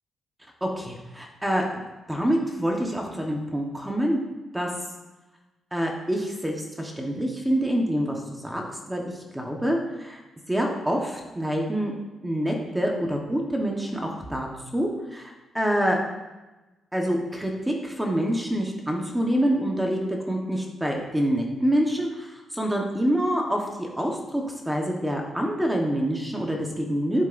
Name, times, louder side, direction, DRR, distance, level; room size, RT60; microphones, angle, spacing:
voice 1, 0.6-1.8 2.1-4.2 4.5-4.7 5.7-9.0 9.3-10.2 10.5-11.9 12.2-16.0 16.9-27.3, equal, 5° right, 0 dB, 1.1 m, -26 dB
11.0 x 9.6 x 2.6 m, 1.1 s
cardioid pair, 140°, 0 cm